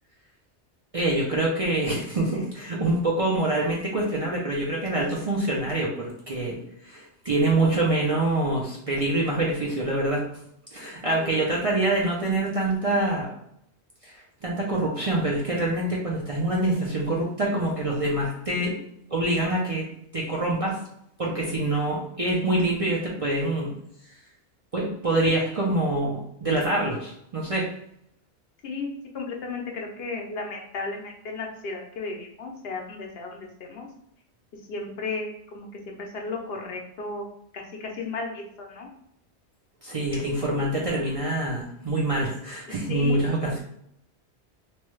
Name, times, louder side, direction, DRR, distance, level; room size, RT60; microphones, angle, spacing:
voice 1, 0.9-6.6 6.8-10.3 10.7-13.3 14.0-14.2 14.4-18.8 19.1-19.9 20.1-20.8 21.2-23.7 24.7-27.7 39.8-43.6, right 2 dB, 40° right, -4 dB, 0.5 m, -25 dB
voice 2, 11.1-11.4 28.6-33.9 34.7-37.3 37.5-38.9 42.9-43.2, left 3 dB, 65° left, 1 dB, 0.8 m, -34 dB
3.0 x 2.3 x 3.0 m, 0.74 s
omnidirectional pair, 1.1 m